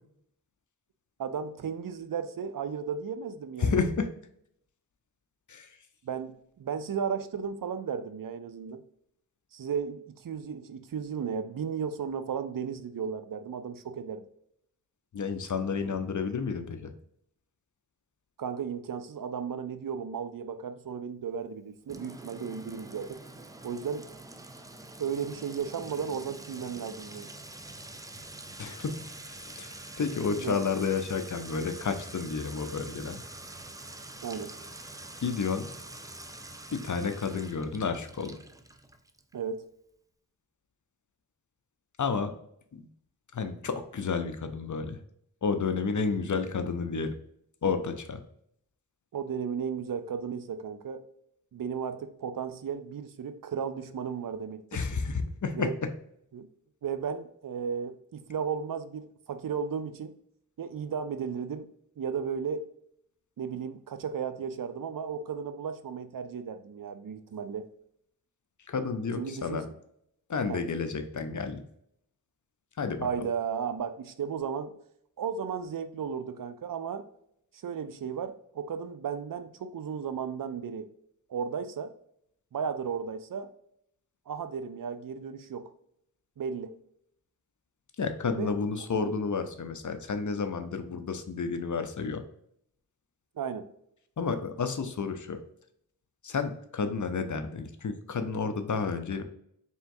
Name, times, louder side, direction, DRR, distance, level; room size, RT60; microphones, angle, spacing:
voice 1, 1.2-3.8 6.0-8.8 9.5-14.3 18.4-23.2 23.6-24.1 25.0-27.3 30.4-30.6 34.2-34.5 39.3-39.7 49.1-51.0 51.5-54.8 55.5-55.7 56.3-56.5 56.8-60.1 60.6-61.7 62.0-62.7 63.4-67.7 69.2-69.8 70.5-70.6 73.0-74.7 75.2-77.1 77.5-80.9 81.3-81.9 82.5-83.5 84.3-85.7 86.4-86.7 88.4-88.5 89.0-89.1 93.4-93.7, right 6 dB, 60° right, 10 dB, 0.5 m, -34 dB
voice 2, 3.6-4.1 5.5-5.7 15.1-16.9 28.6-29.0 29.6-29.7 30.0-33.2 35.2-35.7 36.7-38.4 42.0-42.3 42.7-42.9 43.3-45.0 45.4-47.1 47.6-48.2 54.7-55.7 68.7-69.6 70.3-71.6 72.8-73.3 88.0-92.2 94.2-95.4 96.2-99.2, left 5 dB, 50° left, 8 dB, 0.7 m, -31 dB
Sink (filling or washing) / Trickle dribble / Fill (with liquid), 21.9-39.3, right 2 dB, 10° right, 0.4 m, -45 dB
4.3 x 3.5 x 2.6 m, 0.72 s
cardioid pair, 50°, 37 cm